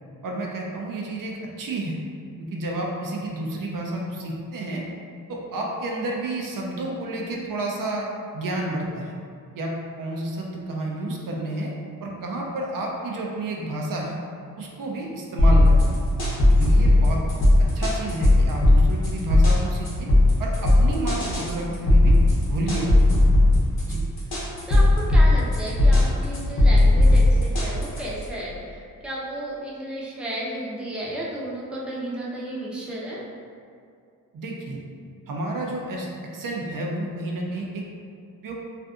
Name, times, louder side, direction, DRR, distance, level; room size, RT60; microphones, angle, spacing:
voice 1, 0.2-2.0 2.4-4.8 5.3-8.1 8.3-9.1 9.6-11.7 12.0-14.2 14.6-16.0 16.6-17.2 17.7-20.1 20.4-22.2 22.5-23.0 23.9-24.0 34.3-34.8 35.3-37.8 38.4-38.5, right 1 dB, 65° right, -1 dB, 0.5 m, -30 dB
sound 1, 15.4-28.2, left 1 dB, 90° left, 0.8 m, -17 dB
voice 2, 24.7-33.2, right 1 dB, 5° right, -6 dB, 0.5 m, -33 dB
2.5 x 2.5 x 2.3 m, 2.3 s
cardioid pair, 65°, 36 cm